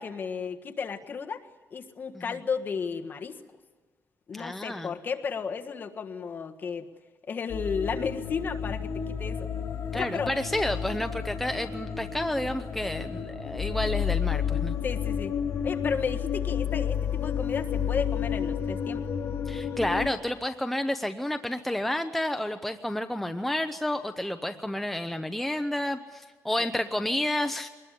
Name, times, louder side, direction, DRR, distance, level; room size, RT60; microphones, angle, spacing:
voice 1, 0.0-1.4 1.7-3.4 4.3-6.9 7.3-9.5 9.9-10.3 14.8-15.4 15.6-19.0, left 6 dB, 35° left, 5 dB, 1.6 m, -33 dB
voice 2, 4.3-4.9 9.9-14.8 19.5-27.7, left 1 dB, 5° left, 7 dB, 0.7 m, -30 dB
sound 1, 7.5-20.1, left 8 dB, 55° left, 3.3 m, -31 dB
23.5 x 20.5 x 9.9 m, 1.4 s
cardioid pair, 165°, 6 cm